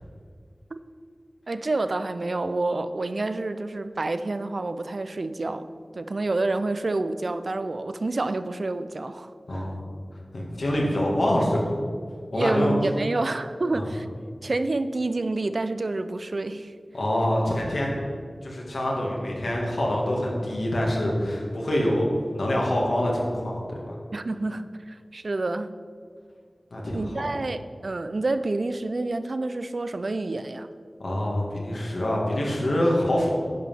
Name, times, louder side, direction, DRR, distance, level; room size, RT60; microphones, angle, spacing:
voice 1, 1.5-5.7 5.9-9.7 12.3-14.1 14.4-16.7 24.1-25.7 26.9-30.7, right 2 dB, 65° right, 11 dB, 0.5 m, -28 dB
voice 2, 9.5-9.8 10.3-11.7 12.3-12.7 13.7-13.9 16.9-17.9 18.4-22.1 22.3-23.9 26.7-27.2 31.0-33.3, left 1 dB, 90° left, -2 dB, 2.0 m, -25 dB
10.0 x 5.7 x 6.0 m, 2.1 s
wide cardioid pair, 55°, 0 cm